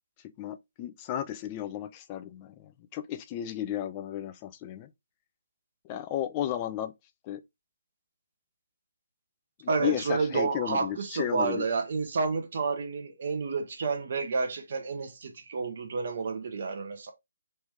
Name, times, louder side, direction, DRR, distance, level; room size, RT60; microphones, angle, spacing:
voice 1, 0.4-4.9 5.8-6.9 7.2-7.4 9.6-11.6, left 11 dB, 25° left, 0.5 m, -34 dB
voice 2, 9.7-17.1, right 4 dB, 50° right, 0.8 m, -30 dB
3.2 x 3.0 x 3.4 m
figure-of-eight pair, 140°, 0 cm